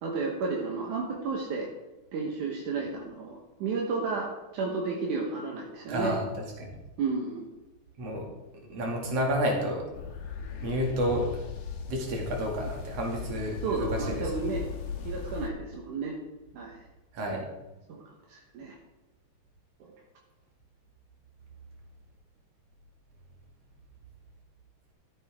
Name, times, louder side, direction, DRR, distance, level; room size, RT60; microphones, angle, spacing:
voice 1, 0.0-1.7 2.1-4.3 4.5-6.2 7.0-7.5 13.6-14.6 15.0-16.2 16.5-16.9 17.9-18.0 18.3-18.8 19.8-19.9, right 4 dB, 75° right, -1 dB, 2.6 m, -32 dB
voice 2, 5.9-6.8 8.0-8.3 8.7-9.8 10.6-11.3 11.9-14.3 17.1-17.5, equal, 50° right, 0 dB, 3.2 m, -30 dB
sound 1, 9.9-15.5, left 6 dB, 90° left, 2.9 m, -37 dB
13.0 x 8.8 x 3.6 m, 1.1 s
omnidirectional pair, 3.7 m